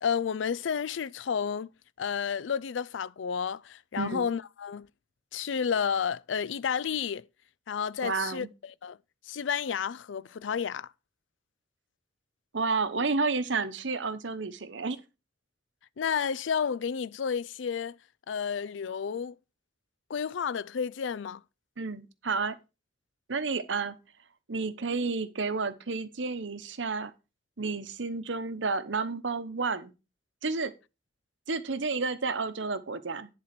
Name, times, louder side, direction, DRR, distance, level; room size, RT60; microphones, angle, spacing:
voice 1, 0.0-1.7 2.0-4.9 5.3-7.3 7.7-9.0 9.2-10.9 16.0-18.0 18.3-19.4 20.1-21.4, left 7 dB, 85° left, 0.4 m, -31 dB
voice 2, 8.0-8.5 12.5-15.0 21.8-22.5 23.3-23.9 24.5-27.1 27.6-29.9 30.4-30.7 31.5-33.3, right 4 dB, 80° right, 1.0 m, -31 dB
10.5 x 4.3 x 5.9 m
head